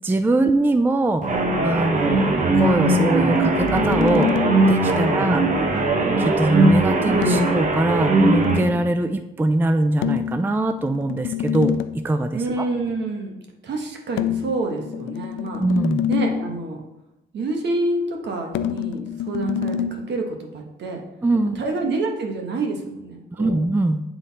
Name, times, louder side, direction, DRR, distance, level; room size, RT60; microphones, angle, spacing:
voice 1, 0.0-1.3 1.6-4.3 4.7-5.4 6.2-12.6 15.6-16.0 21.2-21.6 23.3-24.0, right 2 dB, 10° right, 8 dB, 0.4 m, -22 dB
sound 1, 1.2-8.6, right 2 dB, 40° right, 1.1 m, -19 dB
sound 2, 3.3-4.8 7.2-8.9 10.0-12.1 14.2-16.6 18.5-20.0, left 10 dB, 75° left, 0.4 m, -27 dB
voice 2, 4.9-5.2 12.3-13.4 13.6-15.6 16.1-16.8 17.3-21.0 21.5-23.6, right 2 dB, 60° right, 2 dB, 1.4 m, -27 dB
8.3 x 3.9 x 4.2 m, 0.92 s
cardioid pair, 90°, 20 cm